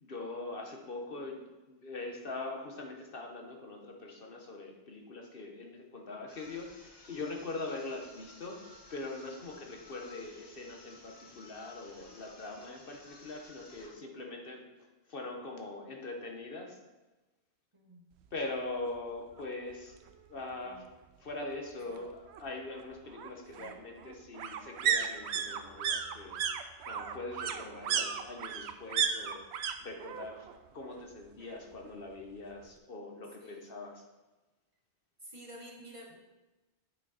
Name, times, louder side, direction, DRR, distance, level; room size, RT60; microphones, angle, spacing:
voice 1, 0.0-1.4 1.7-14.7 15.1-16.8 18.3-20.0 20.3-20.8 21.2-26.5 26.9-29.4 29.8-30.5 30.7-34.0, left 2 dB, 60° left, 1 dB, 1.3 m, -42 dB
sound 1, 6.3-14.0, left 2 dB, 25° left, 1.0 m, -56 dB
voice 2, 17.7-18.1 20.4-20.9 21.9-22.0 23.4-23.8 33.4-33.8 35.2-36.2, right 1 dB, 30° right, -1 dB, 1.2 m, -51 dB
sound 2, 18.8-18.9 19.3-19.4 19.7-20.7 22.0-29.7 30.0-30.6 30.8-31.9 32.2-32.3, right 7 dB, 90° right, 0.9 m, -35 dB
8.4 x 6.2 x 4.1 m, 1.1 s
omnidirectional pair, 1.1 m